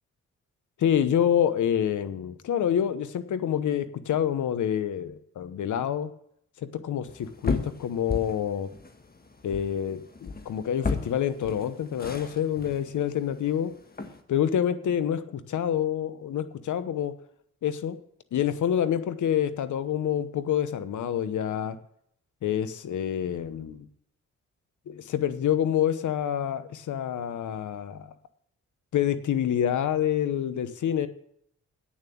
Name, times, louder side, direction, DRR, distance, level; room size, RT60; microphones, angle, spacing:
voice 1, 0.8-6.1 6.6-8.7 9.4-13.7 14.3-17.1 17.6-18.0 18.3-21.8 22.4-23.9 24.9-28.1 28.9-31.1, left 9 dB, 80° left, 12 dB, 1.0 m, -27 dB
sound 1, 7.1-14.2, left 4 dB, 30° left, 1.5 m, -36 dB
9.0 x 7.2 x 8.6 m, 0.70 s
cardioid pair, 70°, 30 cm